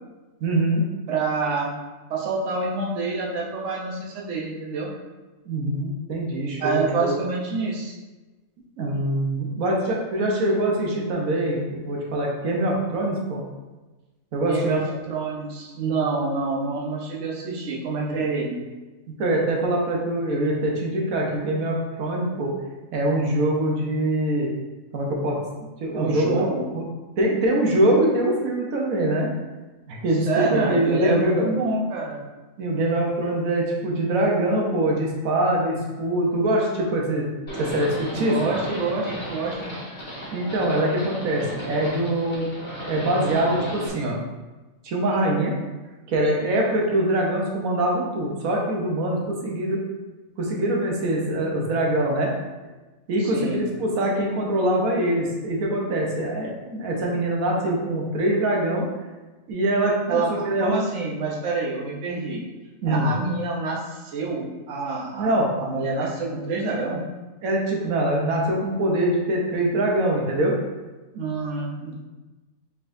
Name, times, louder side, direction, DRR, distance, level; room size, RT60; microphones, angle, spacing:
voice 1, 0.4-0.8 5.5-7.1 8.8-13.4 14.3-14.8 15.8-16.1 18.1-18.2 19.2-22.5 22.9-24.5 24.9-25.4 25.8-26.8 27.2-29.3 29.9-31.5 32.6-37.3 37.6-38.4 40.3-42.5 42.9-44.2 44.8-45.5 46.1-49.8 50.4-52.3 53.1-58.9 59.5-60.8 62.8-63.1 65.1-65.5 66.0-66.1 67.4-70.5, right 1 dB, 85° right, -1 dB, 1.3 m, -23 dB
voice 2, 1.1-1.7 2.1-4.9 6.6-7.9 14.4-18.6 25.9-26.6 30.3-32.2 38.2-39.7 53.2-53.6 60.1-62.4 62.8-67.0 71.1-72.0, right 3 dB, 65° right, -4 dB, 1.1 m, -27 dB
Livestock farm animals working animals, 37.5-43.9, equal, 55° left, 1.5 m, -34 dB
4.2 x 4.1 x 2.6 m, 1.2 s
omnidirectional pair, 1.4 m